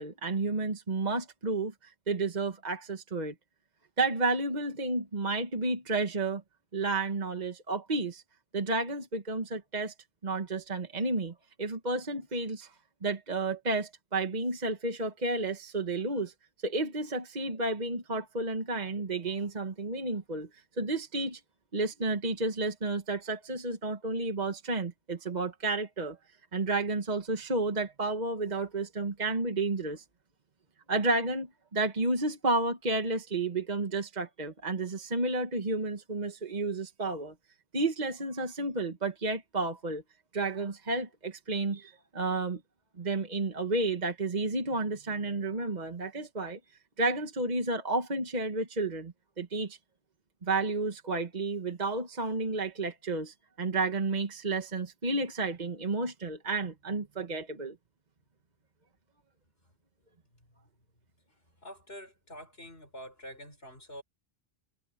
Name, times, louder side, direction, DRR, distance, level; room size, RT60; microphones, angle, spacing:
voice 1, 0.0-3.3 4.0-6.4 6.7-8.2 8.5-9.9 10.2-12.7 13.0-16.3 16.6-20.5 20.8-21.4 21.7-26.2 26.5-30.0 30.9-31.5 31.7-37.3 37.7-40.0 40.3-42.6 43.0-46.6 47.0-49.8 50.4-57.7, right 2 dB, 40° right, 1.6 m, -31 dB
voice 2, 61.6-64.0, equal, 70° left, 6.2 m, -46 dB
omnidirectional pair, 1.1 m